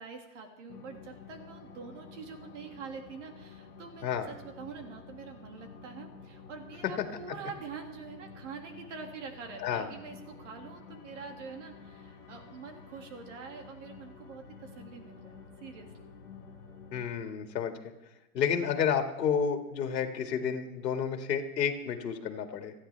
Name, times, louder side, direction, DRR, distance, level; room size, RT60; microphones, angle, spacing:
voice 1, 0.0-16.1, right 5 dB, 45° right, 3 dB, 2.3 m, -45 dB
sound 1, 0.7-17.0, left 5 dB, 20° left, 3.8 m, -51 dB
voice 2, 16.9-17.8 18.3-22.7, left 7 dB, 80° left, 5 dB, 2.1 m, -30 dB
30.0 x 10.0 x 3.4 m, 0.99 s
supercardioid pair, 175°, 49 cm